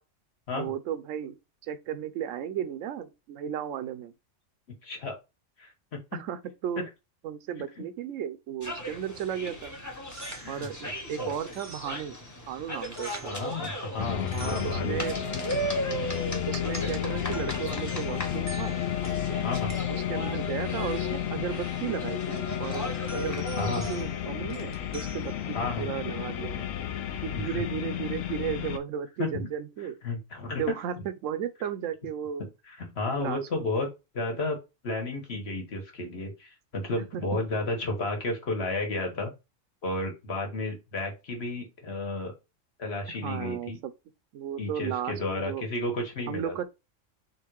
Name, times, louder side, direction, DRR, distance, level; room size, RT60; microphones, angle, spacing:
voice 1, 0.5-1.4 1.6-4.1 6.1-6.8 7.2-9.8 10.5-12.2 12.5-13.4 14.3-15.2 16.5-18.7 19.9-26.6 27.2-30.0 30.6-32.4 33.2-33.7 37.1-37.2 43.2-43.9 44.3-45.6 46.3-46.6, right 9 dB, 80° right, 0.9 m, -35 dB
voice 2, 4.8-5.2 5.6-6.3 6.7-6.9 7.7-7.9 10.4-10.7 11.2-11.3 13.2-15.0 16.9-17.0 17.5-17.6 19.4-19.7 23.5-23.9 25.5-25.9 27.3-27.6 29.2-29.5 29.8-31.0 32.7-33.9 34.1-34.6 34.8-39.3 39.8-42.3 42.8-43.8 44.6-46.6, left 2 dB, 55° left, 1.4 m, -32 dB
philadelphia independencehall rear, 8.6-24.0, equal, 15° left, 0.9 m, -37 dB
sound 1, 9.9-26.1, right 3 dB, 15° right, 0.6 m, -49 dB
sound 2, 14.0-28.8, left 10 dB, 75° left, 0.9 m, -32 dB
3.7 x 2.5 x 4.6 m
omnidirectional pair, 1.3 m